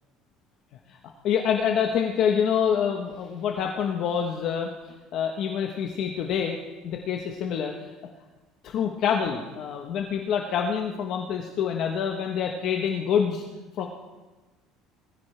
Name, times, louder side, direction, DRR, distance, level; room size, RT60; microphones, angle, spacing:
voice 1, 1.2-6.6 6.8-7.9 8.6-13.4 13.7-13.9, left 7 dB, 45° left, 2 dB, 1.0 m, -26 dB
20.0 x 15.0 x 3.3 m, 1.2 s
cardioid pair, 175°, 0 cm